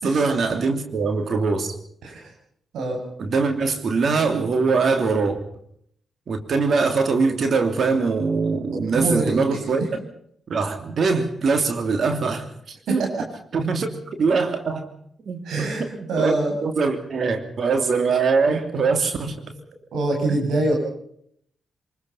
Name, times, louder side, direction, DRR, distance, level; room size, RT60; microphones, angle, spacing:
voice 1, 0.0-1.7 3.2-5.4 6.3-9.8 10.5-13.0 13.5-13.9 14.2-14.9 15.2-15.4 15.9-16.4 16.6-19.4 20.3-20.4, right 4 dB, 60° right, 6 dB, 3.0 m, -22 dB
voice 2, 8.9-9.9 12.9-13.3 15.5-15.8 16.1-16.5 19.9-20.8, right 2 dB, 75° right, 1 dB, 7.3 m, -24 dB
23.5 x 21.5 x 5.7 m, 0.68 s
supercardioid pair, 40°, 0 cm